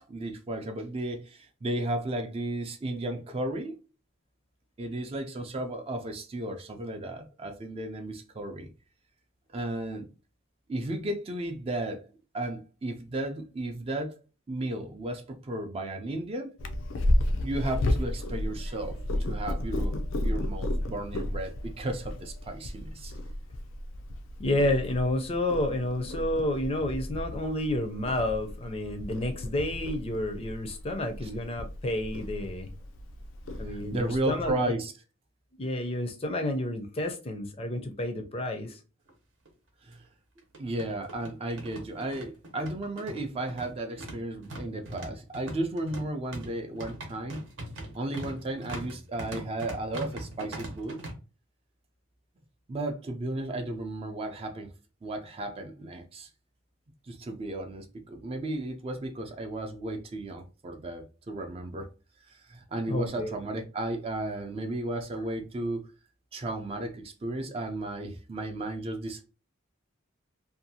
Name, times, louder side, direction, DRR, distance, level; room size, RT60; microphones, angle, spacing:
voice 1, 0.0-3.8 4.8-8.7 9.5-10.1 10.7-12.1 12.3-14.2 14.5-16.5 17.4-23.1 33.6-34.9 39.8-40.0 40.6-47.4 47.9-51.0 52.7-54.7 55.0-56.3 57.1-61.9 62.3-65.8 66.3-69.2, right 1 dB, 30° right, 0.4 m, -34 dB
Purr, 16.6-34.5, left 1 dB, 85° left, 0.4 m, -33 dB
voice 2, 24.4-32.7 33.6-34.8 35.6-38.8 62.9-63.3, left 1 dB, 30° left, 0.5 m, -30 dB
sound 1, 39.1-39.2 39.4-39.5 40.4-51.1, right 1 dB, 75° right, 0.8 m, -41 dB
2.6 x 2.3 x 2.7 m
head